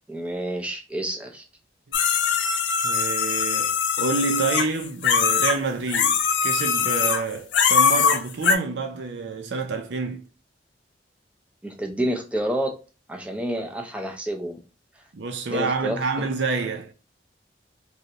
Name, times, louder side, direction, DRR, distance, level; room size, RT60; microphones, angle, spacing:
voice 1, 0.1-1.4 11.6-12.8 13.1-14.6 15.0-15.1 15.5-16.2, right 1 dB, 5° right, 0.5 m, -29 dB
sound 1, 1.9-5.6 5.9-7.2 7.5-8.6, left 6 dB, 85° left, 0.5 m, -21 dB
voice 2, 2.8-10.2 15.1-16.9, right 4 dB, 75° right, 0.5 m, -28 dB
3.2 x 2.6 x 2.7 m
head